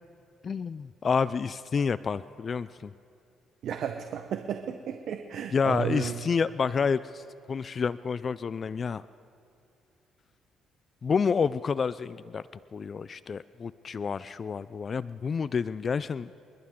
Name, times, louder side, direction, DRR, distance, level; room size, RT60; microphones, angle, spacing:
voice 1, 0.4-2.9 5.5-7.2 7.5-9.0 11.0-12.4 12.7-16.3, left 5 dB, 45° left, 16 dB, 0.3 m, -29 dB
voice 2, 3.6-6.2, right 8 dB, 65° right, 6 dB, 0.8 m, -33 dB
29.5 x 11.5 x 3.7 m, 2.6 s
cardioid pair, 80°, 0 cm